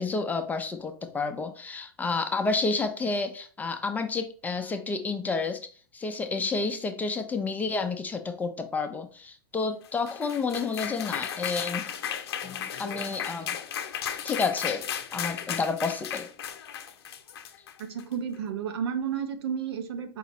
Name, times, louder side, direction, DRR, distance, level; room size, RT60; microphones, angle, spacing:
voice 1, 0.0-11.9 12.4-13.6 14.2-14.9 15.1-16.3, left 4 dB, 15° left, 7 dB, 0.4 m, -30 dB
sound 1, 9.8-18.1, left 9 dB, 90° left, 0.6 m, -35 dB
voice 2, 17.8-20.2, right 7 dB, 85° right, 9 dB, 0.7 m, -32 dB
4.7 x 2.0 x 4.2 m, 0.42 s
supercardioid pair, 130°, 13 cm